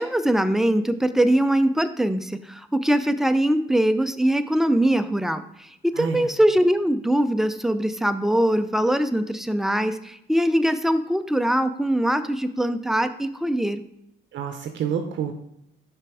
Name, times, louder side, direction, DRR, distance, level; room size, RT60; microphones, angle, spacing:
voice 1, 0.0-13.8, right 1 dB, ahead, 10 dB, 0.4 m, -22 dB
voice 2, 6.0-6.3 14.3-15.3, right 7 dB, 70° right, 6 dB, 0.6 m, -28 dB
5.8 x 3.5 x 4.7 m, 0.79 s
cardioid pair, 90°, 20 cm